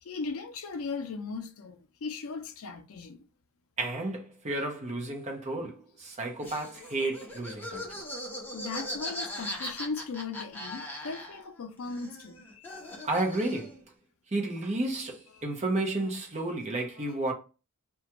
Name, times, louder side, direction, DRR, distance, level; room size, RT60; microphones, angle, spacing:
voice 1, 0.0-3.2 8.5-13.0 17.0-17.2, left 4 dB, 70° left, 0.5 m, -38 dB
voice 2, 3.8-8.0 13.0-13.8 14.3-17.3, right 2 dB, 30° right, 0.8 m, -32 dB
Laughter, 6.4-11.6 11.8-13.8, left 1 dB, 10° left, 0.7 m, -39 dB
2.5 x 2.2 x 2.9 m
head